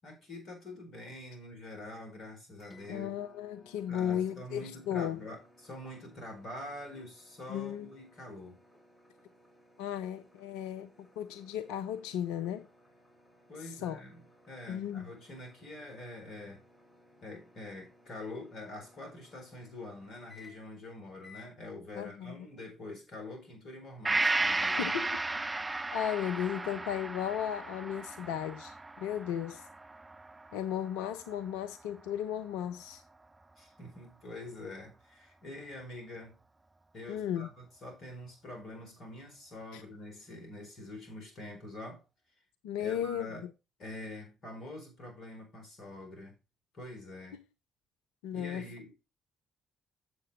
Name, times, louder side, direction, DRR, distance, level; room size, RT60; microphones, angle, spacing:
voice 1, 0.0-3.2 3.9-8.6 13.5-16.6 17.2-25.0 33.6-36.4 36.9-42.0 42.8-43.4 43.8-46.3 46.7-47.4 48.3-48.9, left 1 dB, 55° left, 4.3 m, -45 dB
sound 1, 2.6-20.8 21.2-21.5, left 2 dB, 25° left, 3.2 m, -61 dB
voice 2, 2.9-5.2 7.5-7.9 9.8-12.7 13.6-14.0 14.7-15.1 22.0-22.5 24.8-25.2 25.9-29.6 30.5-33.0 37.1-37.5 39.7-39.8 42.6-43.5 47.3-47.4 48.2-48.6, left 9 dB, 70° left, 0.5 m, -35 dB
Gong, 24.0-31.7 32.1-32.2, right 2 dB, 20° right, 0.4 m, -34 dB
7.6 x 6.6 x 4.8 m
figure-of-eight pair, 45°, 0 cm